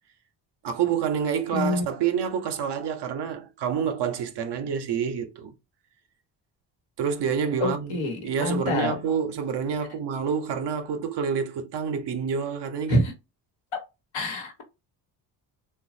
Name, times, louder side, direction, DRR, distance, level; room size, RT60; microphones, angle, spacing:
voice 1, 0.6-5.5 7.0-13.0, right 7 dB, 60° right, 0.7 m, -28 dB
voice 2, 1.5-1.8 7.6-9.0 12.9-13.1 14.1-14.6, left 2 dB, 70° left, 1.1 m, -26 dB
3.0 x 2.3 x 2.6 m
hypercardioid pair, 50°, 47 cm